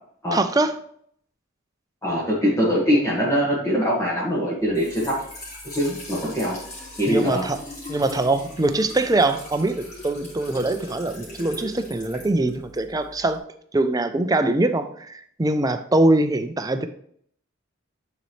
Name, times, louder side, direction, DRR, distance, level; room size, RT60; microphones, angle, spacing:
voice 1, 0.3-0.7 7.1-7.6 7.9-13.4 13.7-16.9, right 2 dB, 20° right, 9 dB, 0.4 m, -22 dB
voice 2, 2.0-5.1 5.7-6.6 7.0-7.4, equal, 15° left, -6 dB, 1.7 m, -22 dB
Trickle dribble / Fill (with liquid), 4.6-13.4, left 1 dB, 35° left, 2.5 m, -40 dB
9.5 x 4.1 x 3.2 m, 0.64 s
head